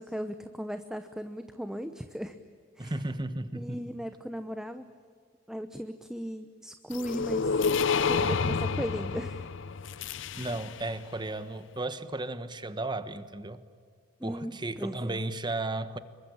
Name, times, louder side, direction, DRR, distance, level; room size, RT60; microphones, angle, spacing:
voice 1, 0.0-2.4 2.8-2.9 3.5-4.9 5.5-7.5 8.1-9.5 10.2-10.3 14.2-15.2, equal, 5° right, 8 dB, 0.8 m, -37 dB
voice 2, 2.8-3.8 10.4-13.6 14.2-16.0, right 2 dB, 20° right, 12 dB, 1.2 m, -34 dB
sound 1, 6.9-10.9, left 5 dB, 65° left, 0.7 m, -29 dB
26.5 x 23.5 x 8.8 m, 2.1 s
head